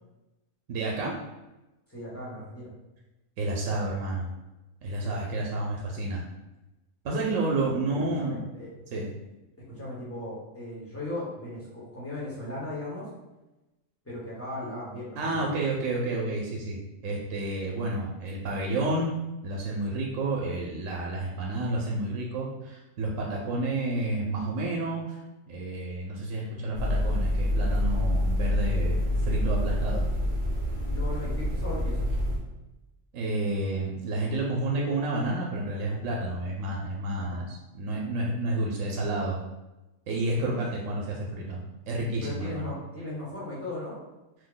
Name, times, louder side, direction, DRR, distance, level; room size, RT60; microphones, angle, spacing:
voice 1, 0.7-1.1 3.4-4.3 4.8-6.2 7.0-8.4 8.9-9.1 15.2-16.8 17.0-19.1 19.4-25.2 25.5-30.1 33.1-39.4 40.1-41.6 41.9-42.7, right 2 dB, 90° right, -2 dB, 1.0 m, -30 dB
voice 2, 1.9-2.7 7.9-9.0 9.7-13.0 14.0-15.5 30.8-32.1 37.2-37.4 40.4-40.6 42.2-44.0, left 1 dB, 10° left, -7 dB, 0.9 m, -37 dB
sound 1, 26.7-32.4, left 1 dB, 45° right, 0.8 m, -27 dB
2.9 x 2.1 x 3.7 m, 1.0 s
omnidirectional pair, 1.3 m